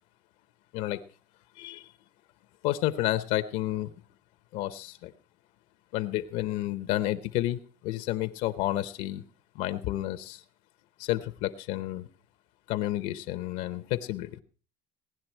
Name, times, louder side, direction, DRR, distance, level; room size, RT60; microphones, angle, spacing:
voice 1, 1.6-1.9 2.6-3.9 4.5-5.1 5.9-9.2 9.5-10.4 11.0-12.1 12.7-14.4, left 15 dB, 65° left, 12 dB, 0.8 m, -30 dB
17.5 x 10.5 x 4.4 m, 0.39 s
cardioid pair, 150°, 14 cm